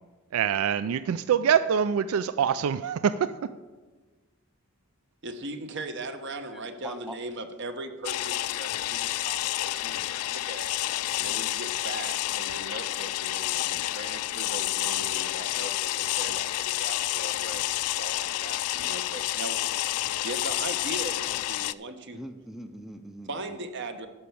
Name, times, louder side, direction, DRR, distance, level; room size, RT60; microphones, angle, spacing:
voice 1, 0.3-3.1, right 8 dB, 70° right, 14 dB, 0.3 m, -24 dB
voice 2, 5.2-10.7 11.1-19.9 20.2-22.2 23.3-24.1, right 2 dB, 55° right, 9 dB, 0.9 m, -39 dB
voice 3, 6.5-7.1 22.1-23.6, right 1 dB, ahead, 8 dB, 0.5 m, -42 dB
sound 1, 8.0-21.7, left 15 dB, 80° left, 0.3 m, -29 dB
11.5 x 5.7 x 7.0 m, 1.3 s
head